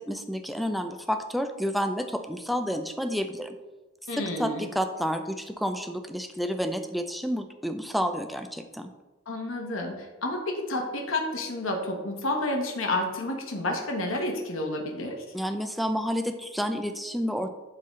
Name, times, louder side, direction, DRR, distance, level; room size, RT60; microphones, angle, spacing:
voice 1, 0.0-3.6 4.1-8.9 15.3-17.5, equal, ahead, 6 dB, 0.4 m, -30 dB
voice 2, 4.1-4.7 9.3-15.2, left 1 dB, 75° left, 2 dB, 1.2 m, -30 dB
11.5 x 3.9 x 3.2 m, 1.2 s
head